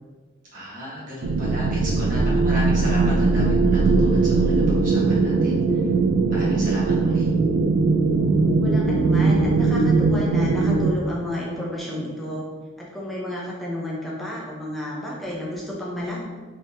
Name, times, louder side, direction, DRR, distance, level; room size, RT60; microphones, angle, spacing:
voice 1, 0.5-5.9 6.3-7.3, equal, 45° right, -7 dB, 1.2 m, -35 dB
sound 1, 1.2-10.9, right 3 dB, 85° right, 0.3 m, -20 dB
voice 2, 8.6-12.4 12.8-16.2, left 1 dB, ahead, -6 dB, 0.7 m, -31 dB
3.7 x 3.1 x 2.7 m, 1.4 s
head